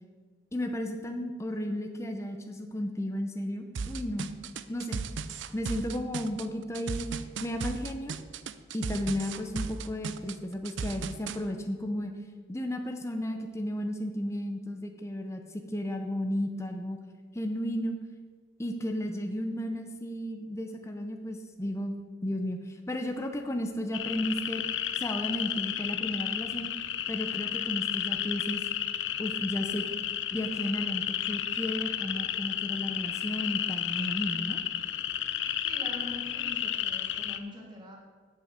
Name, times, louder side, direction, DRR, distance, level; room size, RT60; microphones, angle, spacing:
voice 1, 0.5-4.3 4.7-5.0 5.5-7.1 7.4-8.2 8.7-12.1 12.5-17.0 17.3-18.0 18.6-24.6 24.9-26.7 27.1-28.6 29.2-29.9 30.3-34.6, equal, 15° left, 4 dB, 0.6 m, -33 dB
sound 1, 3.7-11.4, right 5 dB, 80° right, 0.5 m, -36 dB
sound 2, 23.9-37.4, left 10 dB, 80° left, 0.5 m, -32 dB
voice 2, 35.6-38.0, left 1 dB, 25° right, -1 dB, 1.4 m, -43 dB
8.4 x 6.1 x 7.4 m, 1.5 s
head